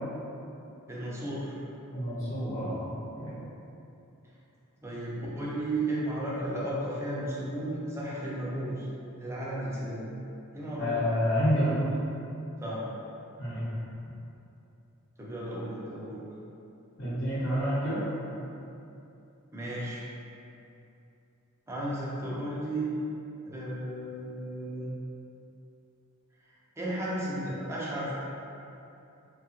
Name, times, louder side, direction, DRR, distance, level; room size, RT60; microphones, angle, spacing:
voice 1, 0.9-1.5 4.8-8.9 9.2-10.1 10.5-11.1 12.6-12.9 15.2-16.2 19.5-20.0 21.7-22.9 23.5-24.9 26.8-28.1, right 1 dB, 10° right, -7 dB, 0.5 m, -34 dB
voice 2, 1.9-3.4 10.8-11.8 13.4-13.7 17.0-18.0, equal, 60° left, -10 dB, 1.0 m, -29 dB
2.9 x 2.3 x 2.9 m, 2.8 s
head